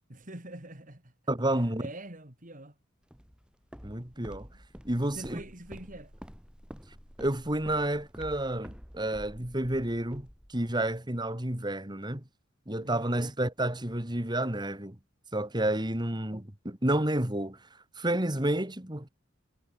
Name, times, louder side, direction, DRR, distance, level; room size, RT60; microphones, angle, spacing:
voice 1, 0.1-1.1 1.8-2.8 4.5-4.6 5.2-6.1 12.8-13.3, right 1 dB, 40° right, 3.9 m, -45 dB
voice 2, 1.3-1.9 3.8-4.5 4.8-5.4 7.2-12.2 12.7-15.0 15.3-17.6 18.0-19.1, right 1 dB, 20° right, 2.6 m, -30 dB
Walk footsteps, 3.1-11.0, equal, 5° right, 7.5 m, -49 dB
head